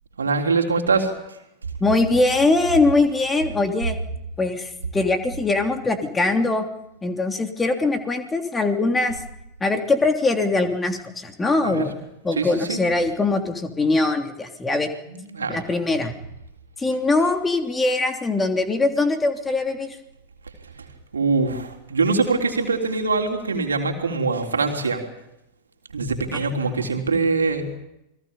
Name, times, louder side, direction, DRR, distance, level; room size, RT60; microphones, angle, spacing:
voice 1, 0.2-1.1 11.6-11.9 12.4-12.8 15.1-15.6 21.1-25.0 25.9-27.7, right 4 dB, 75° right, 4 dB, 3.5 m, -23 dB
voice 2, 1.8-4.0 4.4-6.7 7.0-9.2 9.6-11.9 12.2-14.9 15.5-16.1 16.8-20.0 26.3-26.4, left 3 dB, 15° left, 5 dB, 3.1 m, -22 dB
29.0 x 22.0 x 5.5 m, 0.86 s
figure-of-eight pair, 90°, 0 cm